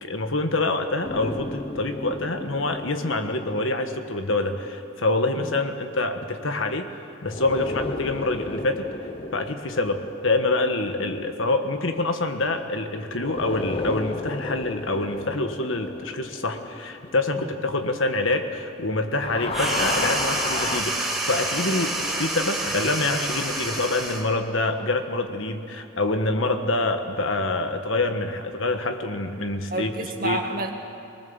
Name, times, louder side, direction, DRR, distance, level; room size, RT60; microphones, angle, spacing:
voice 1, 0.0-6.9 7.2-8.9 9.3-30.4, left 2 dB, 65° left, 6 dB, 1.4 m, -26 dB
sound 1, 1.0-5.5 7.2-12.7 13.1-18.8 19.1-20.8, left 3 dB, 25° left, 0.6 m, -34 dB
sound 2, 19.5-24.3, right 2 dB, ahead, 2.1 m, -28 dB
voice 2, 29.7-30.7, right 1 dB, 45° right, 3 dB, 1.9 m, -29 dB
23.5 x 20.0 x 7.2 m, 2.6 s
head